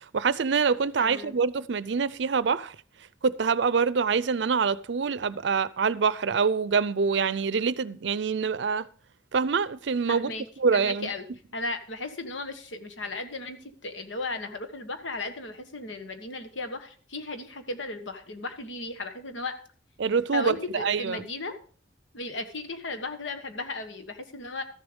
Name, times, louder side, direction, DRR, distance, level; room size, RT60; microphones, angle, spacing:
voice 1, 0.0-2.7 3.2-8.9 9.3-10.3 10.6-11.1 20.0-21.2, right 5 dB, 65° right, 0.5 m, -25 dB
voice 2, 1.0-1.4 10.1-10.5 10.7-11.2 11.5-19.5 20.3-21.5 22.1-24.6, left 2 dB, 85° left, 1.5 m, -35 dB
13.5 x 7.1 x 5.2 m
head